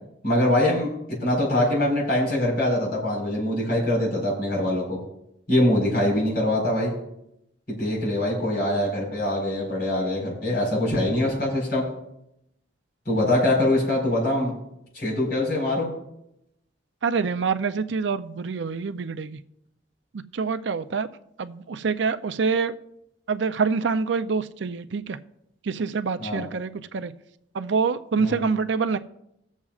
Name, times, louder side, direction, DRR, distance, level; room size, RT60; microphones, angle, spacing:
voice 1, 0.2-5.0 5.5-6.9 7.7-11.9 13.0-14.5 14.9-15.9 26.2-26.4 28.2-28.4, left 1 dB, 50° left, -3 dB, 4.6 m, -23 dB
voice 2, 17.0-19.4 20.3-21.1 21.4-22.7 23.3-25.2 25.6-27.1 27.5-29.0, right 5 dB, 70° right, 11 dB, 0.5 m, -26 dB
21.5 x 7.3 x 2.4 m, 0.81 s
head